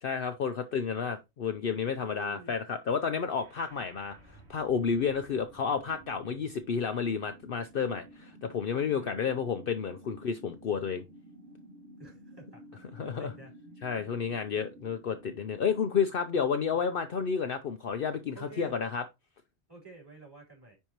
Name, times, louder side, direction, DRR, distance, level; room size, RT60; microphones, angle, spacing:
voice 1, 0.0-11.0 12.9-13.3 13.8-19.0, left 6 dB, 55° left, 0.8 m, -31 dB
voice 2, 1.7-2.6 9.0-9.4 12.0-12.7 13.0-13.5 16.3-16.5 16.7-16.8 18.3-18.7 19.7-20.8, right 3 dB, 20° right, 3.8 m, -50 dB
sound 1, 3.0-17.0, right 1 dB, 65° right, 2.7 m, -53 dB
9.9 x 4.7 x 3.0 m
omnidirectional pair, 1.2 m